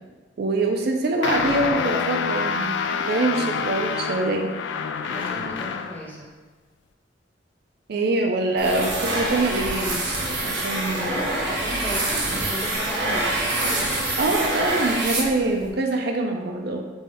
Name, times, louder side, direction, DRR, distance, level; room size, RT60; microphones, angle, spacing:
voice 1, 0.4-2.7 3.1-4.5 7.9-10.2 10.4-11.1 14.2-16.8, right 2 dB, 60° right, 2 dB, 0.4 m, -24 dB
sound 1, 1.2-6.1, left 6 dB, 75° left, 0.3 m, -27 dB
voice 2, 5.0-6.3 10.9-14.7, equal, 10° left, -4 dB, 0.9 m, -35 dB
sound 2, 8.6-15.7, right 2 dB, 75° right, 1.0 m, -25 dB
3.5 x 3.1 x 4.1 m, 1.3 s
head